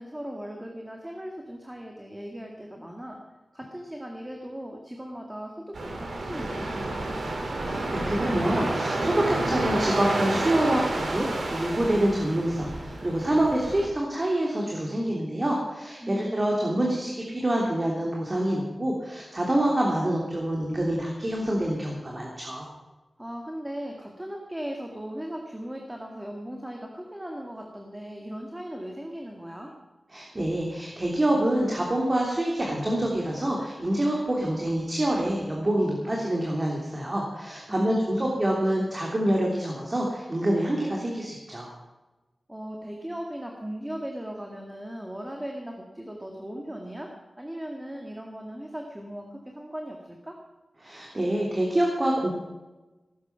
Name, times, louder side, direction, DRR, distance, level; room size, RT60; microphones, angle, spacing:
voice 1, 0.0-3.2 3.5-7.2 16.0-16.8 23.2-29.7 37.7-38.5 42.5-47.1 47.4-50.4, equal, 10° right, 1 dB, 2.1 m, -38 dB
sound 1, 5.7-13.8, right 2 dB, 85° right, 3.9 m, -30 dB
voice 2, 7.6-22.7 30.1-41.7 50.8-52.3, right 1 dB, 30° right, -2 dB, 3.1 m, -26 dB
18.5 x 10.5 x 6.0 m, 1.1 s
wide cardioid pair, 90°, 0 cm